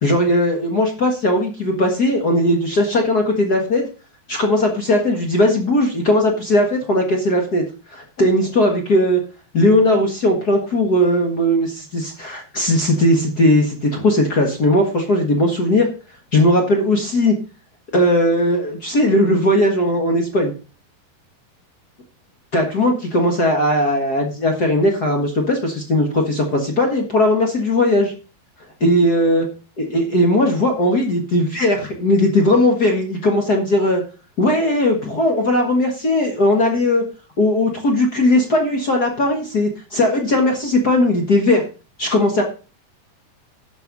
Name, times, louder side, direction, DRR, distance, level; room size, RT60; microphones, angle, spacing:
voice 1, 0.0-3.8 4.3-7.6 7.9-9.2 9.5-15.9 16.3-17.3 17.9-20.5 22.5-28.1 28.8-29.4 29.8-34.0 34.4-37.0 37.4-41.6 42.0-42.4, left 1 dB, 50° left, 2 dB, 1.2 m, -18 dB
11.0 x 6.8 x 5.3 m, 0.35 s
omnidirectional pair, 4.1 m